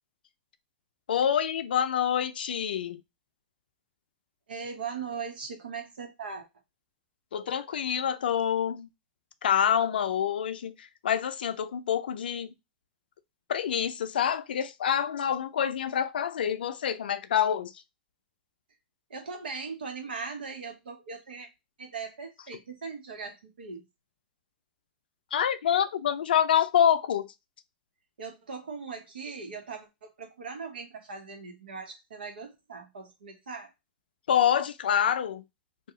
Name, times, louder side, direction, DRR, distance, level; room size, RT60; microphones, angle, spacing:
voice 1, 1.1-3.0 7.3-8.9 9.4-12.5 13.5-17.7 25.3-27.3 34.3-35.4, left 9 dB, 85° left, 0.4 m, -26 dB
voice 2, 4.5-6.5 19.1-21.5 21.8-23.8 28.2-33.7, right 5 dB, 90° right, 1.0 m, -39 dB
2.8 x 2.3 x 3.5 m
hypercardioid pair, 115°, 5 cm